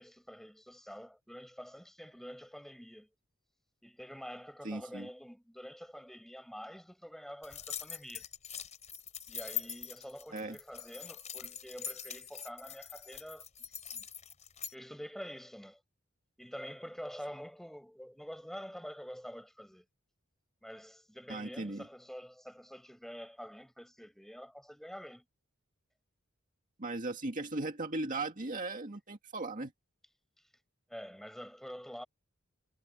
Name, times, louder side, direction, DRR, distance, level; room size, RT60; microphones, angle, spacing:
voice 1, 0.0-3.1 3.8-8.3 9.3-13.4 13.9-14.1 14.7-15.8 16.4-19.8 20.6-25.2 30.9-32.1, equal, ahead, 5.1 m, -47 dB
voice 2, 4.6-5.1 10.3-10.6 21.3-21.9 26.8-29.7, right 2 dB, 40° right, 2.1 m, -37 dB
sound 1, 7.4-14.7, left 8 dB, 35° left, 5.6 m, -43 dB
head